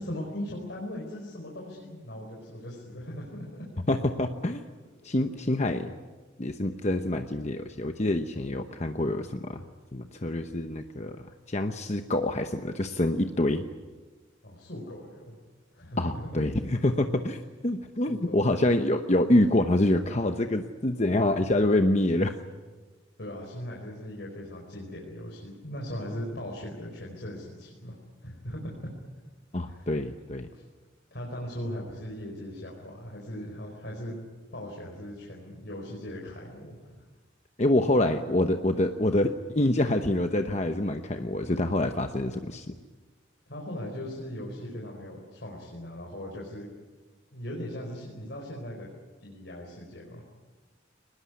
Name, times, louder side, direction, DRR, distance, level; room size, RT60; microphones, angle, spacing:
voice 1, 0.0-3.7 14.4-15.3 15.7-16.4 18.1-18.6 23.2-28.9 29.7-29.9 30.5-30.6 31.1-34.1 34.5-37.0 43.5-46.7 47.3-48.9 49.2-50.2, equal, 60° left, -2 dB, 4.9 m, -39 dB
voice 2, 3.9-4.6 5.0-5.9 6.4-9.6 9.9-11.2 11.5-13.7 16.0-22.3 29.5-30.5 37.6-42.8, left 1 dB, 35° left, 6 dB, 0.9 m, -26 dB
23.0 x 20.0 x 9.6 m, 1.3 s
head